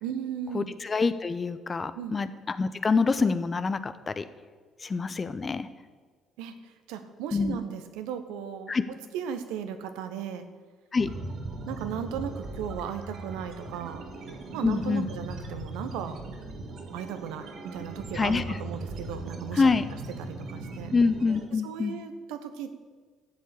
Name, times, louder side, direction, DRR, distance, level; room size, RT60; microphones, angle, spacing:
voice 1, 0.0-0.7 1.9-2.2 6.4-8.7 9.1-10.4 11.7-14.1 14.5-16.2 16.9-19.7 20.2-20.9 21.6-22.9, right 8 dB, 70° right, 9 dB, 1.2 m, -36 dB
voice 2, 0.5-4.2 4.8-5.7 7.3-7.5 8.7-8.8 10.9-11.1 14.6-15.1 18.1-18.6 19.5-19.9 20.9-21.9, left 4 dB, 35° left, 13 dB, 0.9 m, -26 dB
sound 1, 11.0-21.5, right 2 dB, 55° right, 1.8 m, -39 dB
13.0 x 7.7 x 8.4 m, 1.5 s
hypercardioid pair, 50°, 0 cm